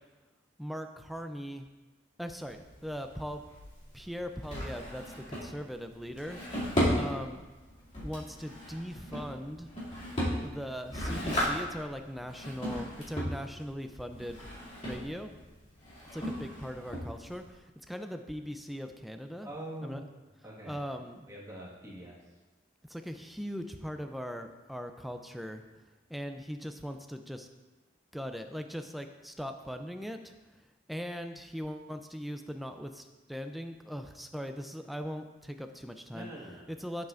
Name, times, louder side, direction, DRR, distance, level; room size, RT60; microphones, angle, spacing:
voice 1, 0.6-1.7 2.2-3.4 3.9-5.0 5.3-6.4 6.9-7.4 8.0-9.7 10.3-14.4 14.8-15.4 16.1-19.5 19.8-20.0 20.6-21.3 22.9-25.6 26.1-27.5 28.1-30.3 30.9-36.3 36.7-37.1, equal, ahead, 6 dB, 0.4 m, -40 dB
Drawer open or close, 2.4-17.6, equal, 40° left, 2.5 m, -36 dB
voice 2, 19.4-20.0 20.4-20.8 21.3-22.2 36.1-36.7, right 1 dB, 15° right, -5 dB, 1.6 m, -43 dB
9.0 x 7.9 x 2.5 m, 1.2 s
head